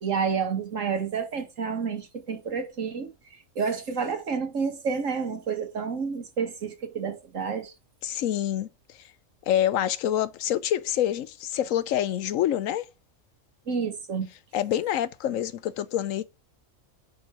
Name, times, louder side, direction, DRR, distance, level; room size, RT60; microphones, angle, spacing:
voice 1, 0.0-3.1 3.6-7.7 13.7-14.3, right 6 dB, 75° right, 1.9 m, -29 dB
voice 2, 8.0-8.7 9.5-12.9 14.5-16.2, left 11 dB, 85° left, 1.0 m, -26 dB
6.5 x 4.5 x 5.8 m
omnidirectional pair, 1.4 m